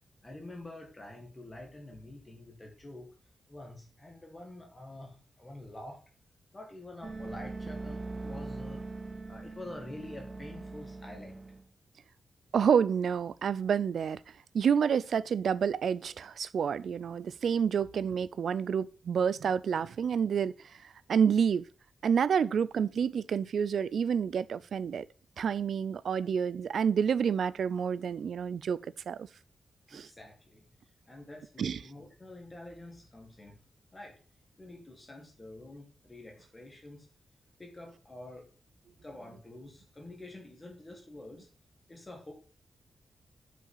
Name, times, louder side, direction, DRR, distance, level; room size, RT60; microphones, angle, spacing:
voice 1, 0.2-3.1 3.5-6.0 6.5-9.0 9.3-11.4 29.9-30.7 31.1-33.6 33.9-34.2 34.6-37.1 37.6-38.5 39.0-41.5 41.9-42.3, left 1 dB, 20° left, 1.8 m, -47 dB
sound 1, 7.0-11.6, right 3 dB, 25° right, 0.8 m, -41 dB
voice 2, 12.5-14.2 14.5-20.5 21.1-21.7 22.0-25.1 25.4-28.8 29.1-29.3 29.9-30.1 31.6-31.8, right 7 dB, 75° right, 0.4 m, -28 dB
7.4 x 5.7 x 5.5 m
wide cardioid pair, 170°, 0 cm